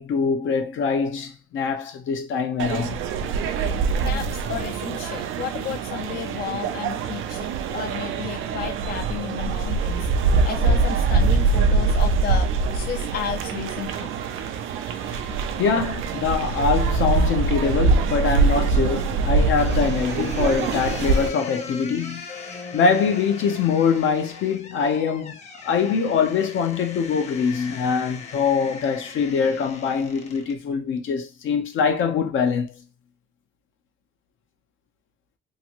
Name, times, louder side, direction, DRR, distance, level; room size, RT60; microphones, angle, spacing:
voice 1, 0.0-3.0 15.6-22.3 22.7-32.7, left 6 dB, 75° left, 0.8 m, -23 dB
sound 1, 2.6-21.3, right 4 dB, 85° right, 0.5 m, -23 dB
voice 2, 4.0-10.1 10.4-14.1, left 9 dB, 50° left, 0.4 m, -33 dB
sound 2, 19.6-30.6, left 4 dB, 35° left, 0.8 m, -40 dB
3.0 x 2.6 x 2.9 m
cardioid pair, 90°, 20 cm